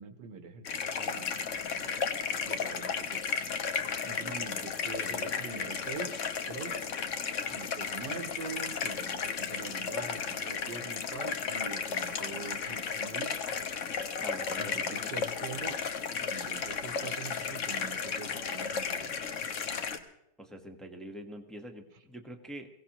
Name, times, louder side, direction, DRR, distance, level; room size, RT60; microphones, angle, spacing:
voice 1, 0.0-3.3 4.0-6.8 7.5-13.3 14.6-15.8 16.1-19.2, right 5 dB, 70° right, 8 dB, 1.7 m, -44 dB
sound 1, 0.6-20.0, left 6 dB, 50° left, 1.1 m, -34 dB
voice 2, 4.5-5.8 14.2-14.9 15.2-15.3 20.4-22.7, right 1 dB, ahead, 3 dB, 0.9 m, -46 dB
22.5 x 16.5 x 3.0 m, 0.82 s
omnidirectional pair, 2.0 m